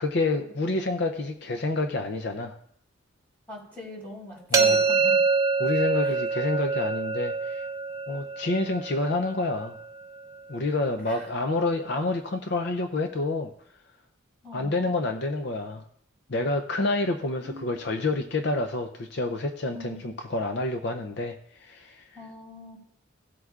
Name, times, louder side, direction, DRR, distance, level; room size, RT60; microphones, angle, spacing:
voice 1, 0.0-2.6 4.5-4.8 5.6-7.7 8.1-9.8 10.5-13.5 14.5-15.8 16.3-22.1, left 2 dB, 55° left, 6 dB, 0.6 m, -28 dB
voice 2, 3.5-5.3 6.0-6.2 11.0-11.3 14.4-14.9 17.4-17.8 19.7-20.0 22.1-22.8, left 1 dB, 10° left, -4 dB, 4.1 m, -42 dB
sound 1, 4.5-10.4, right 4 dB, 15° right, 0.9 m, -26 dB
17.0 x 7.9 x 2.4 m, 0.69 s
head